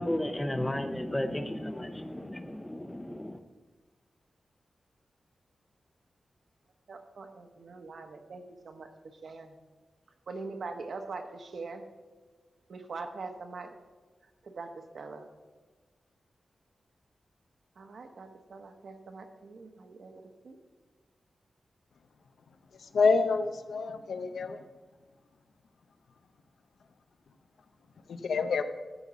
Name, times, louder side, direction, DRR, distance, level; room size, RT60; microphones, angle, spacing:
voice 1, 0.0-3.4, left 1 dB, 10° left, 10 dB, 0.6 m, -33 dB
voice 2, 6.9-9.6 10.3-11.8 12.7-13.8 14.4-15.3 17.7-20.6, right 3 dB, 65° right, 6 dB, 1.1 m, -43 dB
voice 3, 22.8-24.6 28.1-28.6, left 4 dB, 85° left, 9 dB, 0.7 m, -27 dB
13.5 x 5.5 x 6.1 m, 1.4 s
wide cardioid pair, 160°, 0 cm